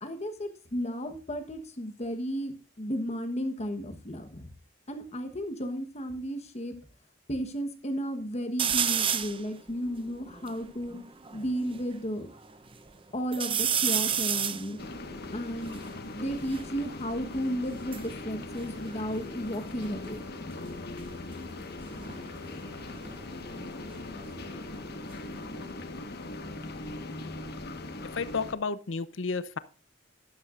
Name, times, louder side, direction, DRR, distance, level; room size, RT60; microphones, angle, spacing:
voice 1, 0.0-4.5 4.9-6.7 7.3-10.9 11.3-12.3 13.1-14.8 15.3-15.8 16.1-20.2, equal, 35° left, 1.2 m, -33 dB
sound 1, 8.6-9.4 10.0-10.1 10.3-11.8 12.3-12.9 13.3-16.7 17.6-19.5 19.8-20.3 21.9-24.5 24.9-25.6, right 8 dB, 30° right, 0.7 m, -32 dB
sound 2, 14.8-28.5, left 2 dB, 55° left, 1.4 m, -40 dB
voice 2, 28.1-29.6, left 4 dB, 80° left, 0.7 m, -32 dB
12.5 x 11.0 x 2.5 m
head